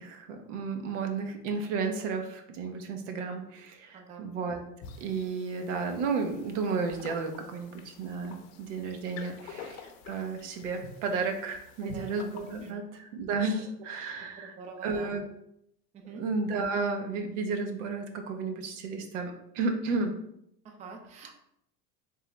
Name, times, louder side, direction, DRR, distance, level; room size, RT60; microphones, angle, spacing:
voice 1, 0.0-4.6 5.0-14.5 14.8-15.2 16.1-20.2, right 4 dB, 80° right, 5 dB, 0.8 m, -33 dB
sound 1, 4.8-12.7, left 5 dB, 60° left, 0.6 m, -48 dB
voice 2, 11.8-12.1 12.6-12.8 14.4-15.1 15.9-16.2 20.6-21.3, right 4 dB, 20° right, 3 dB, 0.4 m, -45 dB
3.6 x 2.9 x 3.2 m, 0.76 s
supercardioid pair, 125°, 36 cm